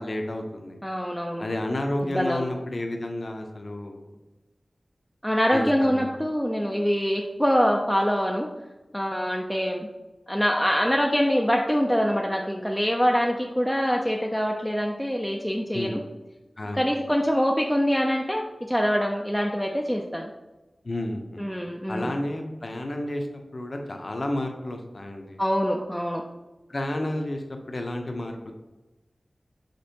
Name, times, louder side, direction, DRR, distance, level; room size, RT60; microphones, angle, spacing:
voice 1, 0.0-0.8 1.4-4.1 5.5-6.1 15.7-16.0 16.6-16.9 20.8-21.5 21.9-23.3 23.5-25.4 26.7-28.5, left 1 dB, 50° left, 3 dB, 0.7 m, -31 dB
voice 2, 0.8-1.5 2.0-2.4 5.2-8.5 8.9-9.9 10.3-16.0 16.7-20.3 21.4-22.2 25.4-26.2, equal, ahead, 0 dB, 0.4 m, -24 dB
5.2 x 3.5 x 2.8 m, 1.1 s
wide cardioid pair, 80°, 0 cm